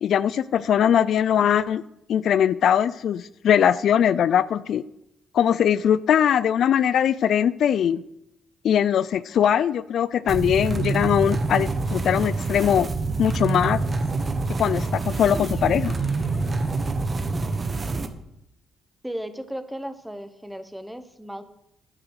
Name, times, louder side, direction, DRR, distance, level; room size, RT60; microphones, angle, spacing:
voice 1, 0.0-1.8 2.1-4.8 5.3-8.0 8.6-12.9 13.2-13.8 14.6-15.9, left 9 dB, 65° left, 16 dB, 0.4 m, -21 dB
sound 1, 10.3-18.1, right 3 dB, 30° right, 1.2 m, -26 dB
sound 2, 15.2-17.6, left 2 dB, 35° left, 2.9 m, -44 dB
voice 2, 19.0-21.4, equal, 5° right, 10 dB, 1.1 m, -35 dB
9.5 x 9.0 x 6.5 m, 0.82 s
cardioid pair, 90°, 0 cm